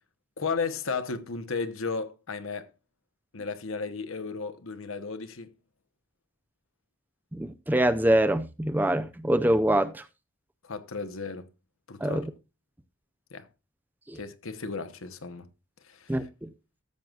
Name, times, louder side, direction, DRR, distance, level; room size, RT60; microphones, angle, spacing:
voice 1, 0.4-2.7 3.3-5.5 10.6-11.5 11.9-12.2 13.3-13.5 14.1-15.5 15.8-16.3, left 4 dB, 80° left, 1.0 m, -34 dB
voice 2, 7.3-10.0 12.0-12.3 14.1-14.2 16.1-16.5, right 1 dB, 10° right, 0.5 m, -25 dB
14.0 x 7.7 x 2.4 m
head